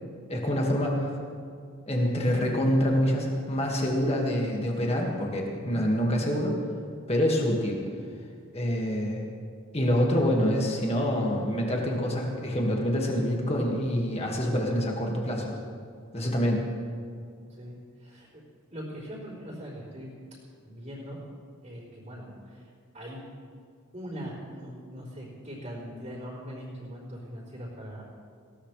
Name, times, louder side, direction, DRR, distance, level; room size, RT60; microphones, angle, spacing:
voice 1, 0.3-1.1 1.9-6.6 7.1-7.8 8.5-9.2 9.7-15.6 16.1-16.6, equal, 25° left, -1 dB, 1.9 m, -26 dB
voice 2, 17.5-18.3 18.7-20.1 20.6-21.2 21.6-23.2 23.9-28.0, equal, 30° right, -12 dB, 3.9 m, -41 dB
19.5 x 17.0 x 3.3 m, 2.2 s
head